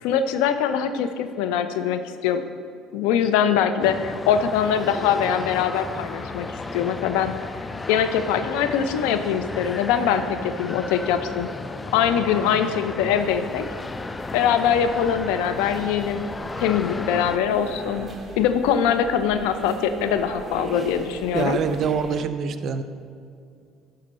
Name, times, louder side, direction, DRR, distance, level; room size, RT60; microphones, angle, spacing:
voice 1, 0.0-2.4 2.9-7.3 7.9-11.5 11.9-13.6 14.3-16.3 16.6-18.1 18.4-21.6, left 8 dB, 80° left, 9 dB, 0.5 m, -23 dB
sound 1, 3.8-17.4, left 3 dB, 20° left, 0.3 m, -34 dB
sound 2, 13.2-22.2, right 2 dB, 20° right, 1.2 m, -38 dB
voice 2, 21.3-22.8, right 6 dB, 55° right, 11 dB, 0.5 m, -25 dB
11.5 x 4.0 x 5.3 m, 2.3 s
supercardioid pair, 75°, 0 cm